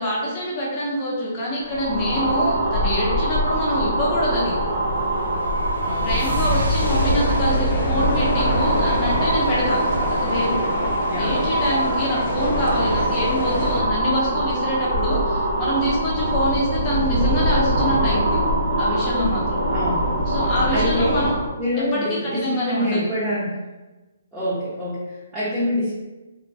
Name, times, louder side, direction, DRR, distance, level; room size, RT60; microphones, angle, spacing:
voice 1, 0.0-4.6 6.0-9.8 10.1-10.6 11.2-18.4 18.8-19.6 20.3-21.4 21.9-23.1, equal, 30° left, -5 dB, 0.8 m, -25 dB
sound 1, 1.6-21.5, right 1 dB, 45° right, 0.8 m, -23 dB
sound 2, 4.4-9.4, equal, 90° right, 0.5 m, -28 dB
voice 2, 5.8-7.1 11.1-11.4 19.7-20.2 20.7-21.3 21.6-23.5 24.3-25.9, left 1 dB, 5° right, -14 dB, 0.7 m, -26 dB
sound 3, 6.8-13.8, left 2 dB, 55° left, 0.4 m, -28 dB
2.2 x 2.1 x 2.7 m, 1.2 s
hypercardioid pair, 145°, 0 cm